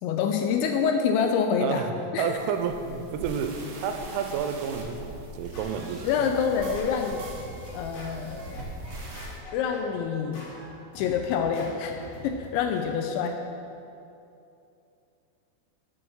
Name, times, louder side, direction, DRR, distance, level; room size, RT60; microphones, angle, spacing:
voice 1, 0.0-1.8 2.1-2.4 6.0-7.2 7.7-8.7 9.5-10.5 11.0-13.4, left 6 dB, 85° left, 5 dB, 2.7 m, -27 dB
voice 2, 1.6-6.1, right 6 dB, 90° right, 7 dB, 3.2 m, -30 dB
sound 1, 2.3-9.4, right 3 dB, 70° right, 2.4 m, -42 dB
Scratching (performance technique), 4.6-12.8, left 2 dB, 60° left, 3.8 m, -44 dB
7.9 x 7.2 x 6.9 m, 2.7 s
omnidirectional pair, 5.6 m